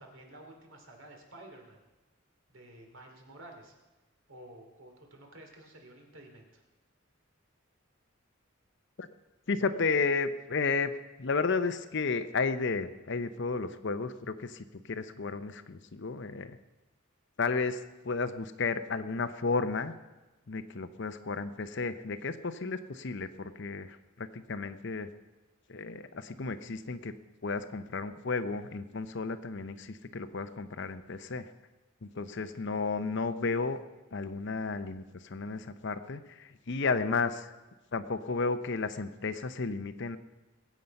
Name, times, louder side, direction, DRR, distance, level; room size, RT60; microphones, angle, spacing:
voice 1, 0.0-1.8 2.5-3.7 4.3-6.6, right 1 dB, 65° right, 2 dB, 2.8 m, -51 dB
voice 2, 9.5-10.9 11.2-16.6 17.4-19.9 20.5-25.1 25.7-27.1 27.4-31.5 32.0-33.8 34.1-37.5 37.9-40.2, left 4 dB, 60° left, 11 dB, 0.7 m, -33 dB
20.5 x 8.4 x 5.4 m, 1.1 s
head